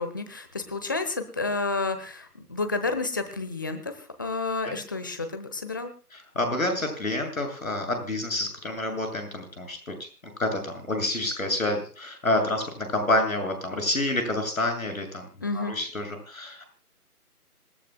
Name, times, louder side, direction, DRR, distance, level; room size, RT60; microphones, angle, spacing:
voice 1, 0.0-5.9 15.4-15.7, left 3 dB, 15° left, 7 dB, 0.9 m, -30 dB
voice 2, 6.4-9.9 10.4-15.3 15.5-16.6, left 1 dB, 60° left, 5 dB, 7.1 m, -28 dB
26.5 x 13.0 x 2.2 m, 0.40 s
figure-of-eight pair, 150°, 46 cm